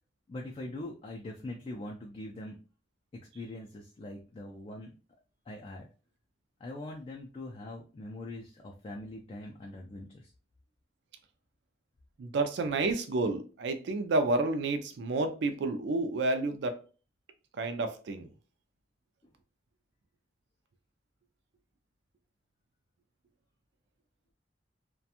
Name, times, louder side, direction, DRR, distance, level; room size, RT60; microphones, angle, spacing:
voice 1, 0.3-2.6 3.1-4.9 5.5-5.9 6.6-10.3, left 1 dB, 30° left, 0.3 m, -42 dB
voice 2, 12.2-16.8 17.6-18.3, right 2 dB, 70° right, 0.4 m, -30 dB
2.4 x 2.2 x 2.8 m
head